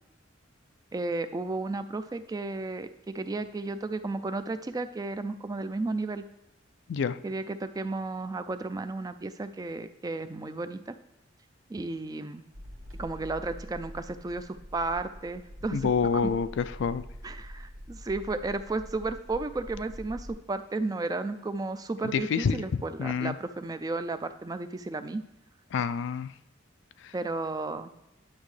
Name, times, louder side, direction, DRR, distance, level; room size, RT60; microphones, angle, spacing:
voice 1, 0.9-6.2 7.2-10.9 11.7-12.4 13.0-16.3 17.2-25.2 27.1-27.9, right 3 dB, 20° right, 10 dB, 0.3 m, -33 dB
sound 1, 12.5-20.3, equal, 85° right, 1.1 m, -45 dB
voice 2, 15.7-17.0 22.1-22.6 23.0-23.4 25.7-26.3 27.0-27.1, left 6 dB, 65° left, 14 dB, 0.3 m, -27 dB
10.5 x 6.2 x 3.2 m, 0.93 s
head